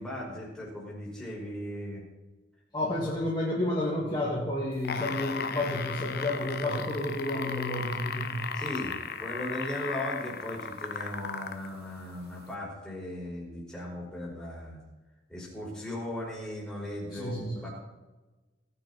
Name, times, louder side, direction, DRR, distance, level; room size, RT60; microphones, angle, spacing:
voice 1, 0.0-2.0 8.5-8.9 9.2-14.8 15.3-17.7, left 1 dB, 5° left, -5 dB, 4.9 m, -37 dB
voice 2, 2.7-8.5 17.1-17.7, left 1 dB, 20° left, -5 dB, 2.1 m, -31 dB
sound 1, 4.7-11.7 12.5-12.6, left 6 dB, 50° left, 1.0 m, -35 dB
19.0 x 9.3 x 4.2 m, 1.2 s
head